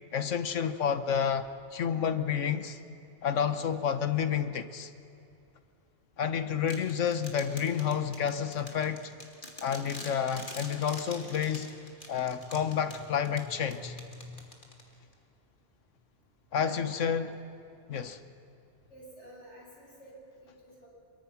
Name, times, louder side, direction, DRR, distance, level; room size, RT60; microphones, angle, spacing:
voice 1, 0.1-2.8 3.2-4.9 6.2-9.0 9.6-11.7 12.1-13.9 16.5-17.3 17.9-18.2, left 7 dB, 90° left, 10 dB, 1.4 m, -30 dB
sound 1, 6.7-15.1, left 2 dB, 45° left, 2.4 m, -46 dB
voice 2, 12.2-13.0 13.3-14.4 16.6-17.2 18.9-20.9, left 1 dB, 70° left, -4 dB, 7.3 m, -50 dB
24.0 x 23.0 x 6.0 m, 2.6 s
omnidirectional pair, 1.2 m